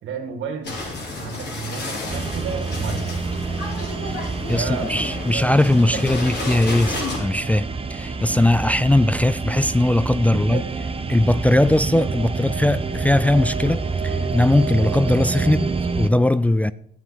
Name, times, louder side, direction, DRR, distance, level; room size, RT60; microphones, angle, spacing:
voice 1, 0.0-0.8 1.2-3.2 4.4-5.5 5.9-6.2 8.7-8.8 10.2-10.7, right 5 dB, 80° right, 2.1 m, -32 dB
sound 1, 0.6-7.2, left 2 dB, 60° left, 4.8 m, -32 dB
sound 2, 0.8-7.3, left 2 dB, 30° left, 1.9 m, -39 dB
sound 3, 2.1-16.1, right 4 dB, 30° right, 1.0 m, -27 dB
voice 2, 4.5-10.6 11.1-16.7, left 1 dB, 5° left, 0.4 m, -19 dB
12.5 x 7.3 x 5.8 m
cardioid pair, 90°, 20 cm